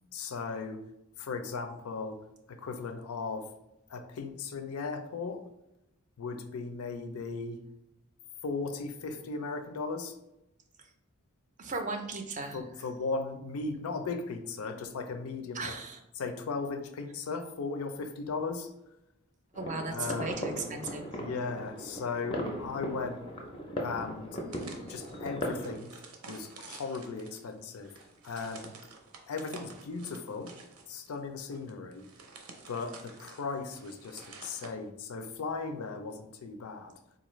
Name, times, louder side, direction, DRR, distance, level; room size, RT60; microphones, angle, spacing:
voice 1, 0.1-0.8 1.2-2.2 2.5-3.5 3.9-5.4 6.2-7.6 8.4-10.2 12.5-15.7 16.2-18.7 19.9-20.4 21.1-23.2 23.8-24.4 24.9-25.9 26.3-27.9 28.2-28.7 29.3-30.5 30.9-32.0 32.7-36.9, left 4 dB, 80° left, 8 dB, 0.4 m, -37 dB
voice 2, 11.6-12.6 15.5-16.0 19.5-21.1, right 3 dB, 35° right, 5 dB, 0.4 m, -36 dB
sound 1, 19.5-25.8, equal, 25° left, 0.4 m, -38 dB
sound 2, 24.5-34.7, right 4 dB, 80° right, 0.6 m, -50 dB
4.0 x 2.4 x 3.0 m, 0.88 s
head